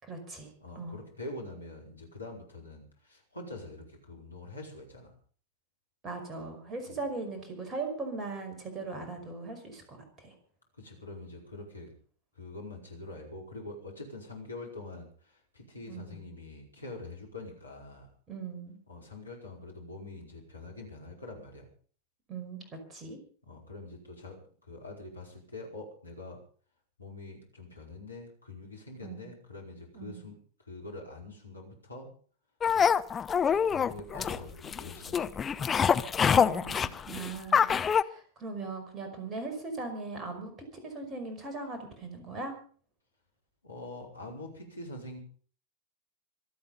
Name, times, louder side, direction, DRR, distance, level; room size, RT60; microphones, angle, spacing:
voice 1, 0.0-0.5 0.8-1.0 6.0-10.4 15.9-16.2 18.3-18.8 22.3-22.6 22.9-23.2 29.0-29.3 29.9-30.3 36.3-40.6 40.8-42.5, right 3 dB, 25° right, 5 dB, 5.3 m, -39 dB
voice 2, 0.6-5.1 6.9-7.0 10.7-11.9 12.3-18.1 18.9-21.7 23.5-26.4 27.0-30.3 30.7-32.1 32.7-32.9 33.5-35.7 43.6-45.2, left 2 dB, 80° left, 0 dB, 4.8 m, -45 dB
sound 1, 32.6-38.0, left 7 dB, 20° left, 0.7 m, -25 dB
26.0 x 8.7 x 5.4 m, 0.44 s
figure-of-eight pair, 90°, 0 cm